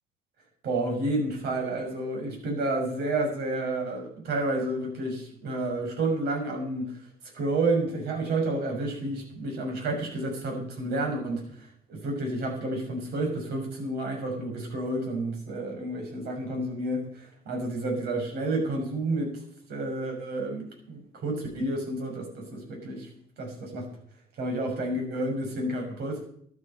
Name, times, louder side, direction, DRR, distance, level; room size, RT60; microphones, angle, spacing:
voice 1, 0.6-7.0 7.3-19.4 19.7-23.1 23.4-23.9 24.4-26.3, right 2 dB, 75° right, 2 dB, 6.4 m, -30 dB
13.0 x 12.0 x 5.6 m, 0.63 s
cardioid pair, 110°, 17 cm